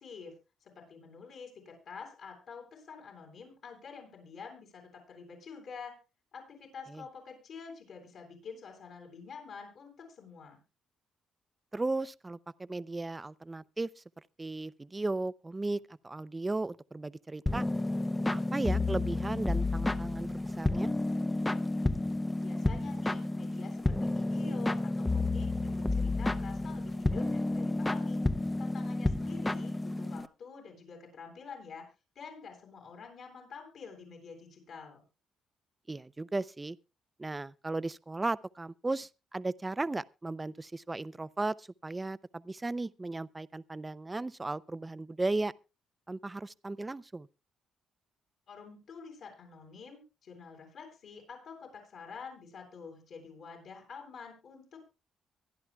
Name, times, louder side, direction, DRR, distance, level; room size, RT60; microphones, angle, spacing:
voice 1, 0.0-6.0 6.3-10.6 22.4-28.2 28.6-31.9 32.1-35.0 48.5-54.8, left 5 dB, 65° left, 7.8 m, -48 dB
voice 2, 11.7-13.9 14.4-17.6 18.3-20.9 35.9-36.8 37.2-45.5 46.1-47.3, right 2 dB, 20° right, 0.5 m, -36 dB
sound 1, 17.5-30.3, left 2 dB, 15° left, 0.8 m, -31 dB
24.0 x 11.0 x 2.3 m
cardioid pair, 90°, 0 cm